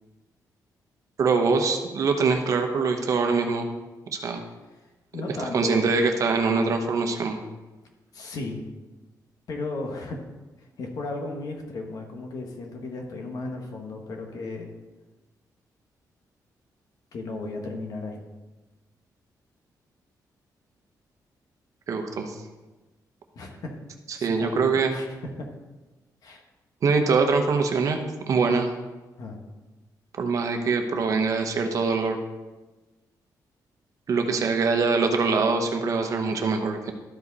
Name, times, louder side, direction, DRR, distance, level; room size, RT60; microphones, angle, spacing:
voice 1, 1.2-3.7 4.1-4.4 5.5-7.4 21.9-22.3 24.1-25.0 26.8-28.0 28.3-28.7 30.2-32.2 34.1-36.9, right 4 dB, 50° right, 5 dB, 1.0 m, -23 dB
voice 2, 5.1-5.9 8.1-8.6 9.5-10.2 10.6-14.7 17.1-18.2 23.3-23.7 24.2-24.6 24.9-25.1 25.4-25.5 26.2-26.4 29.2-29.4, left 2 dB, 60° left, 2 dB, 1.5 m, -35 dB
12.5 x 5.1 x 4.1 m, 1.2 s
wide cardioid pair, 165°, 7 cm